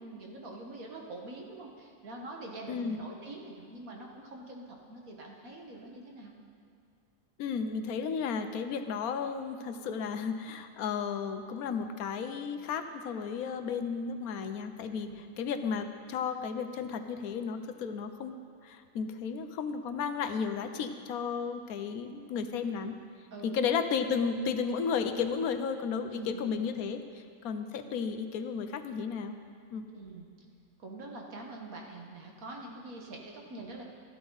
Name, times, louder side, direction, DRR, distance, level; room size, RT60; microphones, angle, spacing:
voice 1, 0.0-6.3 15.0-15.2 23.3-23.6 26.1-26.6 29.9-30.3 30.8-33.8, right 2 dB, 80° right, 0 dB, 1.9 m, -45 dB
voice 2, 2.7-3.0 7.4-15.1 15.4-18.4 18.6-23.0 23.4-29.4 29.7-29.9, left 6 dB, 90° left, 8 dB, 1.2 m, -33 dB
13.0 x 12.5 x 4.0 m, 2.4 s
omnidirectional pair, 1.5 m